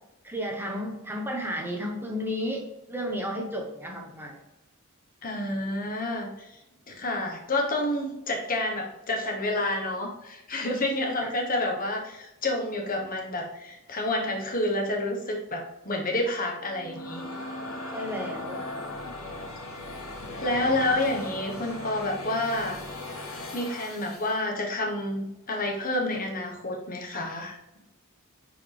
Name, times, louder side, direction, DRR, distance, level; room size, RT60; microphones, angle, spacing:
voice 1, 0.2-4.4 11.2-11.3 17.9-18.6, equal, 10° right, 0 dB, 1.2 m, -33 dB
voice 2, 5.2-6.6 6.9-17.3 20.4-22.8 23.5-27.6, left 1 dB, 40° left, 1 dB, 1.3 m, -29 dB
sound 1, 16.6-24.4, left 2 dB, 70° left, 2.8 m, -38 dB
9.0 x 4.6 x 3.4 m, 0.93 s
head